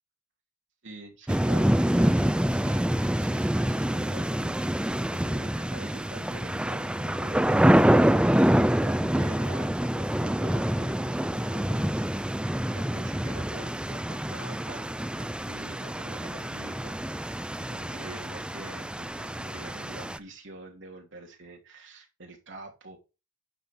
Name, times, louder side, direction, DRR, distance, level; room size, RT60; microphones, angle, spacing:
voice 1, 0.8-2.3 2.6-7.7 8.3-12.1 12.7-23.0, right 2 dB, 60° right, 2 dB, 3.0 m, -46 dB
sound 1, 1.3-20.2, equal, 5° right, 0.4 m, -26 dB
11.0 x 5.5 x 5.8 m, 0.29 s
head